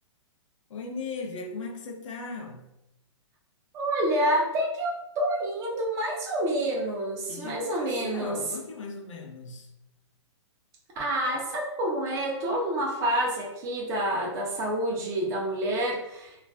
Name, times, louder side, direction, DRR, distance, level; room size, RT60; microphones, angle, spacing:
voice 1, 0.7-2.7 7.3-9.7, left 3 dB, 80° left, 0.6 m, -37 dB
voice 2, 3.7-8.4 11.0-16.4, right 1 dB, 20° right, 0.5 m, -28 dB
2.4 x 2.1 x 3.5 m
hypercardioid pair, 155°, 16 cm